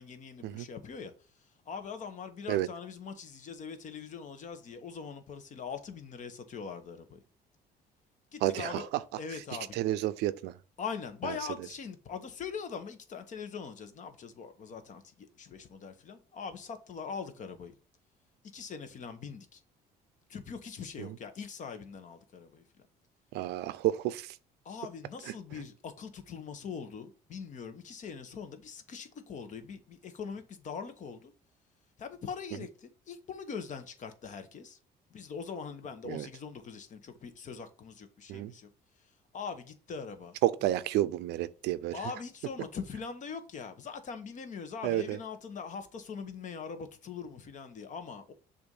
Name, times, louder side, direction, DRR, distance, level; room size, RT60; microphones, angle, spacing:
voice 1, 0.0-7.2 8.3-8.9 9.2-9.8 10.8-17.7 18.5-19.6 20.3-22.9 24.6-31.3 32.0-34.8 35.1-38.7 39.0-40.7 41.9-48.3, left 6 dB, 45° left, 1.0 m, -42 dB
voice 2, 8.4-8.8 9.7-10.5 11.2-11.3 21.0-21.1 23.3-24.3 36.1-36.3 38.3-38.5 40.4-42.0 44.8-45.2, right 14 dB, 85° right, 0.5 m, -30 dB
6.9 x 2.6 x 5.3 m
cardioid pair, 110°, 17 cm